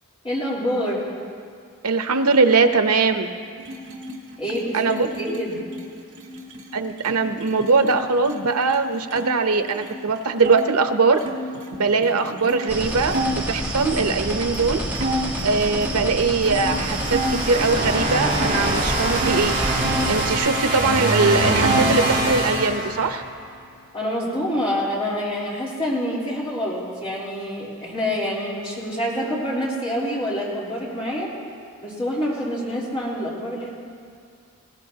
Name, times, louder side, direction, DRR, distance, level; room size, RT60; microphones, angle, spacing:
voice 1, 0.2-1.0 4.4-5.6 23.9-31.3 31.8-33.7, equal, 25° left, -8 dB, 3.5 m, -26 dB
voice 2, 1.8-3.3 4.7-5.3 6.7-11.2 11.8-13.2 13.5-14.8 15.4-19.6 20.1-23.2, right 4 dB, 90° right, 8 dB, 0.8 m, -21 dB
sound 1, 3.6-9.3 9.6-10.6 11.2-14.1 14.5-14.7 14.9-17.4 17.8-19.4 19.8-20.9 21.1-22.0, equal, 70° right, 1.8 m, -31 dB
sound 2, 12.7-20.4, right 1 dB, 10° right, 1.3 m, -28 dB
sound 3, 16.5-23.4, right 1 dB, 40° right, 4.9 m, -24 dB
20.5 x 18.0 x 2.9 m, 2.2 s
head